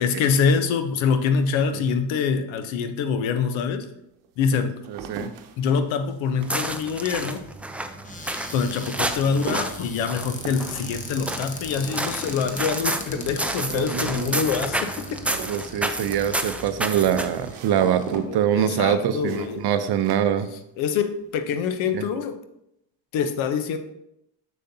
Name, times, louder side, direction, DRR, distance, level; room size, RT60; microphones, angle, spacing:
voice 1, 0.0-3.9 4.4-4.8 5.6-7.4 8.3-15.2 18.1-19.6 20.8-22.4 23.1-23.8, left 6 dB, 70° left, 9 dB, 0.9 m, -25 dB
sound 1, 3.0-3.1 3.8-21.0 21.2-21.8, right 6 dB, 80° right, 0.9 m, -42 dB
voice 2, 4.5-5.3 13.2-13.4 13.7-14.4 15.5-20.5 21.9-22.0, right 9 dB, 50° right, 10 dB, 0.7 m, -24 dB
sound 2, 6.4-17.5, right 1 dB, 5° right, 0.3 m, -30 dB
Cupboard open or close, 8.0-18.4 19.1-19.2 19.4-19.8, left 2 dB, 15° left, 0.8 m, -40 dB
6.6 x 6.4 x 2.7 m, 0.80 s
supercardioid pair, 85°, 49 cm